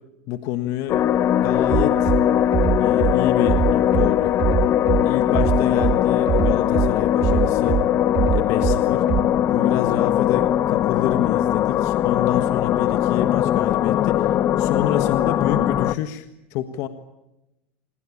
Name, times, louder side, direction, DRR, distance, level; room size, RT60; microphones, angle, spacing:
voice 1, 0.3-1.0 1.3-2.1 2.8-4.3 5.0-7.8 8.3-9.1 9.5-16.9, left 12 dB, 60° left, 8 dB, 1.6 m, -27 dB
sound 1, 0.9-16.0, left 11 dB, 40° left, 0.9 m, -20 dB
Bass drum, 1.7-2.2 2.5-3.1 3.5-4.1 4.4-5.0 5.3-5.9 6.3-6.9 7.2-7.8 8.1-8.8 9.1-9.2, right 10 dB, 40° right, 1.7 m, -21 dB
27.0 x 20.0 x 8.8 m, 0.95 s
hypercardioid pair, 105°, 6 cm